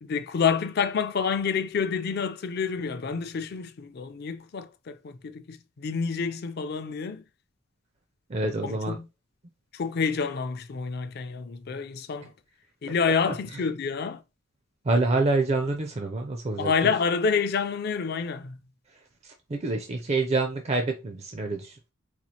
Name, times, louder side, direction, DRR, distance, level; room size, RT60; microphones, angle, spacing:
voice 1, 0.0-7.2 8.6-9.1 9.7-12.3 12.8-14.2 16.6-18.6, left 5 dB, 50° left, 0.4 m, -28 dB
voice 2, 8.3-9.0 14.8-16.7 19.2-21.8, right 3 dB, 30° right, 0.4 m, -27 dB
4.3 x 2.4 x 2.8 m
head